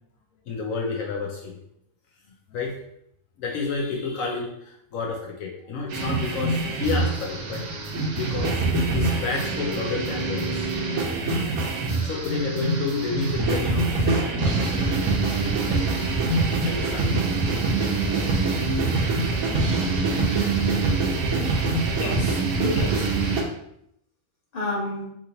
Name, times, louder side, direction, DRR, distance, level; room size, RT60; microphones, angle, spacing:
voice 1, 0.5-1.6 2.5-2.8 3.4-8.7 8.9-10.7 12.0-15.1 15.7-15.8 16.6-17.1, left 4 dB, 75° left, -1 dB, 1.0 m, -30 dB
sound 1, 5.9-23.4, right 3 dB, 85° right, 1.1 m, -24 dB
voice 2, 21.6-23.2 24.5-25.1, left 1 dB, 30° left, -5 dB, 1.1 m, -31 dB
3.7 x 3.0 x 2.6 m, 0.74 s
omnidirectional pair, 1.4 m